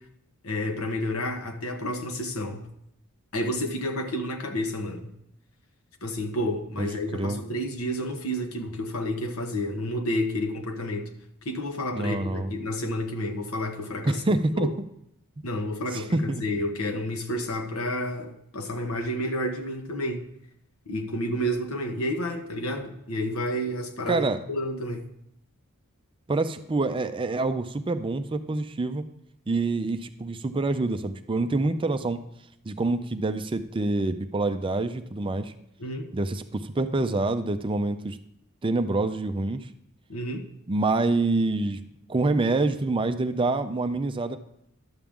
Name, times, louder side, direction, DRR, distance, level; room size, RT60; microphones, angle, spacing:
voice 1, 0.4-2.7 3.3-5.1 6.0-11.1 11.4-14.2 14.5-14.7 15.4-20.2 20.9-25.1 35.8-36.1 40.1-40.5, equal, 70° left, 5 dB, 1.1 m, -30 dB
voice 2, 6.8-7.4 11.9-12.5 14.1-14.7 15.4-15.5 15.9-16.4 24.1-24.4 26.3-29.0 29.5-32.2 32.6-35.5 36.1-38.2 38.6-39.7 40.7-41.8 42.1-44.4, right 2 dB, 25° right, 9 dB, 0.4 m, -26 dB
11.5 x 7.3 x 3.6 m, 0.76 s
head